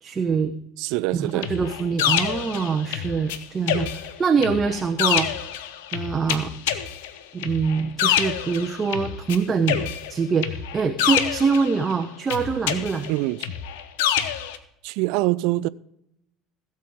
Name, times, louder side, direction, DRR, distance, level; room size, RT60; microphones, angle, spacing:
voice 1, 0.0-0.5 1.1-5.3 5.9-6.5 7.3-13.1, right 5 dB, 25° right, 0.8 m, -24 dB
voice 2, 0.8-1.5 13.1-13.5 14.8-15.7, right 19 dB, 60° right, 0.3 m, -24 dB
sound 1, 1.4-3.4 3.7-9.4 9.7-11.9 12.3-14.6, left 10 dB, 65° left, 0.7 m, -26 dB
16.0 x 7.7 x 3.6 m
figure-of-eight pair, 65°, 0 cm